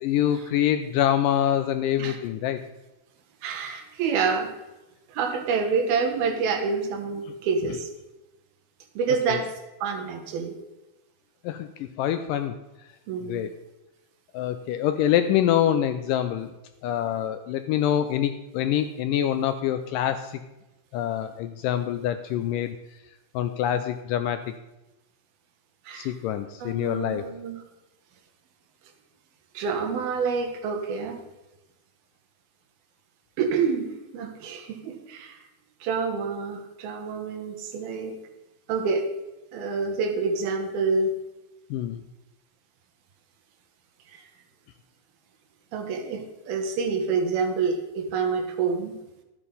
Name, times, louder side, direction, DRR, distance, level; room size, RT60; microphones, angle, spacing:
voice 1, 0.0-2.6 9.3-9.4 11.4-12.5 13.2-13.6 14.3-16.5 16.8-20.4 20.9-22.8 23.4-24.4 25.9-27.3 41.7-42.0, left 10 dB, 80° left, 9 dB, 2.0 m, -25 dB
voice 2, 3.4-4.5 5.1-7.9 9.0-9.5 9.8-10.6 13.1-13.4 25.9-26.1 26.6-27.6 29.5-31.2 33.4-35.4 35.8-38.2 38.7-39.1 39.5-41.1 44.1-44.2 45.7-49.0, right 5 dB, 80° right, 5 dB, 3.2 m, -27 dB
12.5 x 8.4 x 5.4 m, 1.0 s
omnidirectional pair, 4.3 m